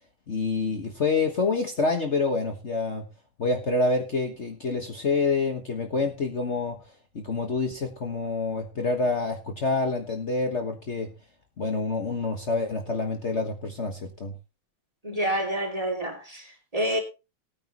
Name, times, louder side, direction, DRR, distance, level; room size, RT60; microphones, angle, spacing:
voice 1, 0.3-3.1 3.4-6.8 7.1-11.1 11.6-14.3, left 3 dB, 80° left, 0.6 m, -27 dB
voice 2, 15.0-17.0, right 1 dB, 10° right, 2.4 m, -28 dB
18.5 x 9.4 x 3.0 m
omnidirectional pair, 3.5 m